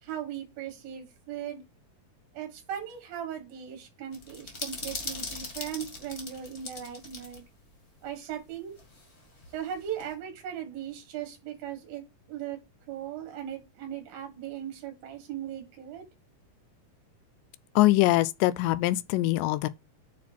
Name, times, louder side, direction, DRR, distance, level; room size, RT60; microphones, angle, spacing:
voice 1, 0.0-1.6 2.3-7.4 8.0-8.8 9.5-12.6 12.9-16.0, right 10 dB, 85° right, 3.4 m, -38 dB
sound 1, 4.1-7.4 7.7-7.8 8.8-10.1, left 3 dB, 30° left, 1.1 m, -40 dB
voice 2, 17.8-19.7, left 17 dB, 80° left, 2.0 m, -23 dB
8.6 x 3.9 x 4.4 m
omnidirectional pair, 4.1 m